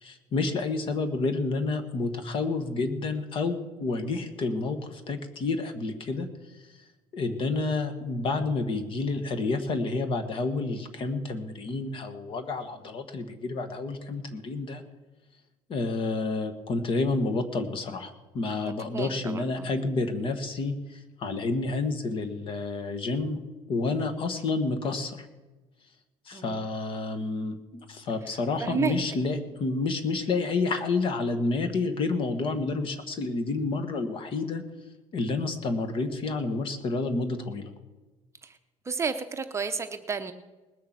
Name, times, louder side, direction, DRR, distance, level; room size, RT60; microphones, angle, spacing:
voice 1, 0.0-6.3 6.5-6.7 7.1-14.8 15.7-23.4 23.7-25.3 26.2-34.6 35.1-37.7, left 3 dB, 45° left, 8 dB, 1.5 m, -29 dB
voice 2, 18.6-19.7 26.3-26.6 28.6-29.0 38.4-38.5 38.9-40.3, right 5 dB, 20° right, 7 dB, 0.8 m, -31 dB
19.5 x 6.7 x 7.5 m, 1.2 s
cardioid pair, 130°, 13 cm